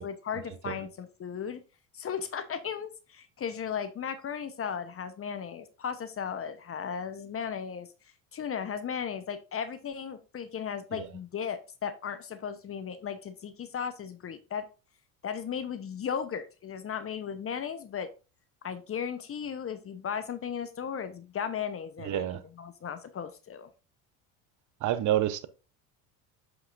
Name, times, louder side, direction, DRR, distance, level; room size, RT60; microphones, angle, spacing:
voice 1, 0.0-1.6 1.9-7.9 8.3-14.6 15.2-18.1 18.6-23.7, left 7 dB, 30° left, 0.9 m, -36 dB
voice 2, 22.0-22.4 24.8-25.5, right 12 dB, 40° right, 0.8 m, -28 dB
7.7 x 6.0 x 2.5 m
hypercardioid pair, 80°, 44 cm